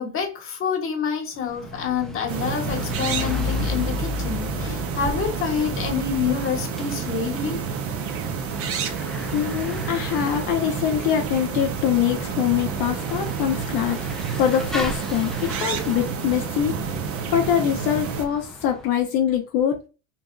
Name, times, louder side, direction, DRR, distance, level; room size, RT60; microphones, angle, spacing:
voice 1, 0.0-7.6, left 6 dB, 35° left, 1.4 m, -27 dB
Bicycle / Mechanisms, 1.3-18.9, left 3 dB, ahead, 0.6 m, -35 dB
sound 1, 2.3-18.3, right 6 dB, 40° right, 0.9 m, -29 dB
voice 2, 9.3-14.0 14.4-16.8 17.3-19.7, left 10 dB, 70° left, 0.9 m, -23 dB
5.5 x 2.6 x 2.4 m
supercardioid pair, 125°, 36 cm